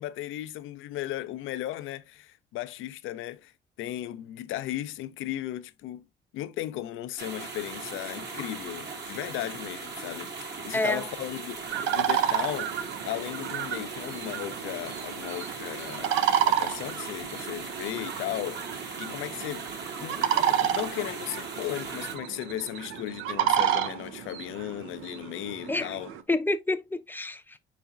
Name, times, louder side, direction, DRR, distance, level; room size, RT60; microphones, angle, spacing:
voice 1, 0.0-3.5 3.8-6.0 6.3-11.6 11.9-12.7 13.1-26.1, left 14 dB, 85° left, 0.4 m, -36 dB
sound 1, 7.2-22.2, right 4 dB, 60° right, 1.3 m, -39 dB
voice 2, 10.7-11.1 25.7-26.0 26.3-27.6, left 2 dB, 10° left, 0.5 m, -28 dB
sound 2, 11.7-26.2, right 10 dB, 90° right, 0.5 m, -30 dB
4.7 x 4.0 x 2.3 m
cardioid pair, 90°, 20 cm